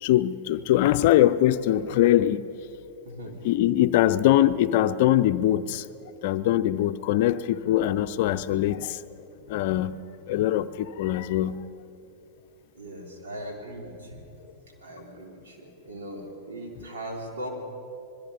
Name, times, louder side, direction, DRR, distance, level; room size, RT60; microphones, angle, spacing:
voice 1, 0.0-2.4 3.4-5.9 6.2-9.0 9.5-10.0 10.3-11.6, left 13 dB, 55° left, 12 dB, 0.6 m, -22 dB
voice 2, 3.0-3.4 12.7-14.3 14.8-17.5, right 1 dB, 70° right, 1 dB, 3.9 m, -39 dB
25.5 x 21.5 x 5.3 m, 2.9 s
figure-of-eight pair, 90°, 0 cm